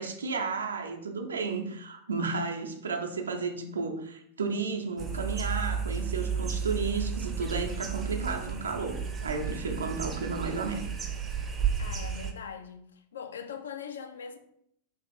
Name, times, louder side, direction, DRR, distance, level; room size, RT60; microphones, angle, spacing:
voice 1, 0.0-10.9, right 4 dB, 70° right, 0.5 m, -33 dB
sound 1, 5.0-12.3, right 6 dB, 20° right, 0.5 m, -33 dB
voice 2, 11.8-14.4, left 7 dB, 65° left, 0.4 m, -41 dB
3.1 x 3.0 x 3.3 m
figure-of-eight pair, 90°, 0 cm